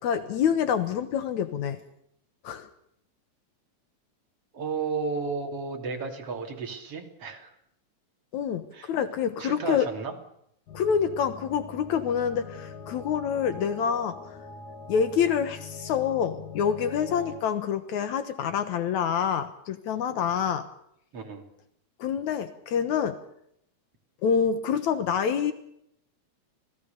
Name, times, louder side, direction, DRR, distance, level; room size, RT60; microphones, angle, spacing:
voice 1, 0.0-1.8 2.4-2.7 8.3-9.9 10.7-14.2 14.9-20.7 22.0-23.2 24.2-25.5, left 7 dB, 75° left, 10 dB, 2.5 m, -27 dB
voice 2, 4.5-7.5 8.7-8.9 9.4-10.2 21.1-21.4, right 4 dB, 50° right, 3 dB, 3.8 m, -33 dB
sound 1, 10.7-17.4, left 4 dB, 90° left, 3.9 m, -43 dB
26.5 x 18.5 x 6.9 m, 0.73 s
omnidirectional pair, 3.4 m